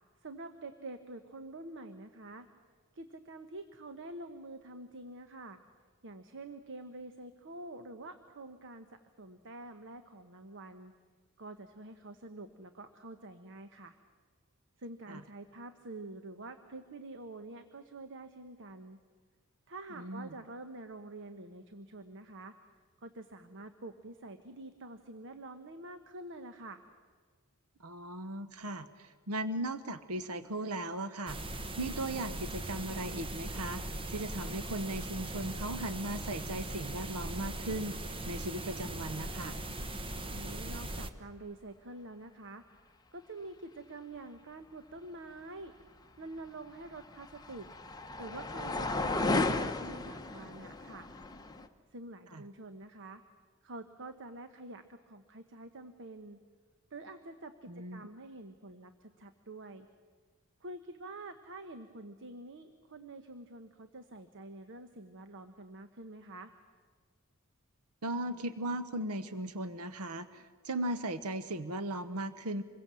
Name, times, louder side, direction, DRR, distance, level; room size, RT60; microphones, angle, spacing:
voice 1, 0.2-2.5 2.9-5.6 6.0-10.9 11.4-14.0 14.8-19.0 19.7-22.6 23.0-26.8 40.3-42.7 43.1-45.7 46.2-47.7 48.2-51.1 51.9-53.2 53.6-56.4 56.9-59.9 60.6-66.5, right 2 dB, 60° right, 8 dB, 1.1 m, -47 dB
voice 2, 20.0-20.3 27.8-31.4 31.8-33.8 34.1-38.0 38.3-39.6 52.3-52.4 57.7-58.0 68.0-72.6, right 1 dB, 85° right, 12 dB, 0.9 m, -37 dB
sound 1, 31.3-41.1, right 1 dB, 25° right, 1.1 m, -40 dB
sound 2, 46.4-51.7, left 2 dB, 20° left, 1.0 m, -34 dB
26.5 x 22.0 x 7.6 m, 1.6 s
head